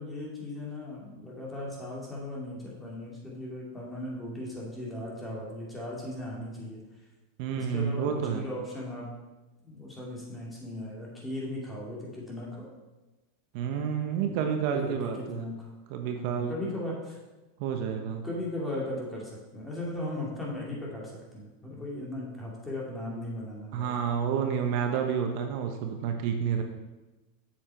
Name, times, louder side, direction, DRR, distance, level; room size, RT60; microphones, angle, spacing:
voice 1, 0.0-6.8 7.6-9.1 9.6-12.7 14.2-14.4 14.7-15.7 16.1-17.2 18.2-24.0 26.4-26.6, left 1 dB, 10° left, -4 dB, 2.5 m, -37 dB
voice 2, 7.4-8.4 13.5-15.4 15.9-16.5 17.6-18.3 23.7-26.6, right 7 dB, 55° right, 4 dB, 0.9 m, -29 dB
7.4 x 7.3 x 4.4 m, 1.1 s
supercardioid pair, 135°, 0 cm